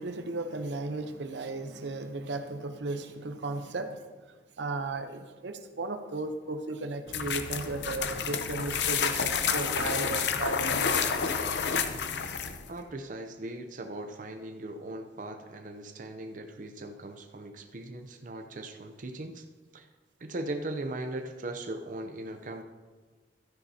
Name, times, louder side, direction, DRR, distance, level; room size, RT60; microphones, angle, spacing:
voice 1, 0.0-4.1 4.6-11.4, right 3 dB, 80° right, 8 dB, 0.7 m, -35 dB
sound 1, 7.1-12.7, left 6 dB, 70° left, 0.6 m, -29 dB
voice 2, 12.7-19.5 19.7-19.9 20.2-22.6, right 2 dB, 45° right, 5 dB, 0.6 m, -39 dB
13.0 x 9.5 x 2.8 m, 1.4 s
head